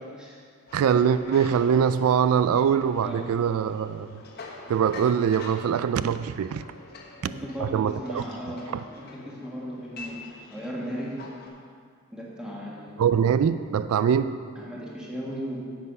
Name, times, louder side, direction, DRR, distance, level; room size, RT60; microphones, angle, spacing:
sound 1, 0.7-8.5, left 1 dB, 85° left, 1.2 m, -53 dB
sound 2, 0.7-11.5, left 3 dB, 45° left, 1.3 m, -46 dB
voice 1, 0.7-4.1 4.7-6.6 7.2-7.3 7.6-8.8 13.0-14.3, right 7 dB, 85° right, 13 dB, 0.3 m, -23 dB
voice 2, 7.2-8.7 8.9-11.1 12.1-13.0 14.5-15.6, equal, 5° right, -5 dB, 1.7 m, -36 dB
9.6 x 7.7 x 5.4 m, 2.1 s
head